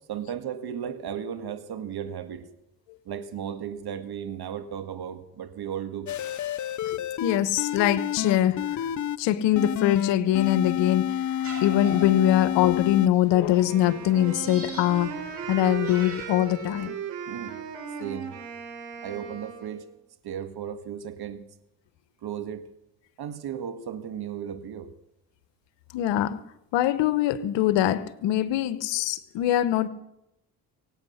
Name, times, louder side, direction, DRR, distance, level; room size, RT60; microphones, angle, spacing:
voice 1, 0.1-2.5 3.1-6.1 17.3-17.6 18.0-18.3 19.0-19.8 20.2-21.5 22.2-22.7 23.2-24.9, right 9 dB, 55° right, 1.9 m, -35 dB
sound 1, 6.1-9.2 9.6-13.1, left 10 dB, 40° left, 0.7 m, -29 dB
voice 2, 6.9-8.6 9.2-11.1 11.6-15.1 15.5-16.9 25.9-26.4 26.7-29.9, left 12 dB, 75° left, 1.1 m, -23 dB
sound 2, 11.4-16.8, right 1 dB, 30° right, 6.8 m, -43 dB
Wind instrument woodwind instrument, 13.7-19.9, right 6 dB, 75° right, 3.9 m, -37 dB
23.5 x 9.0 x 5.7 m
hypercardioid pair, 50°, 44 cm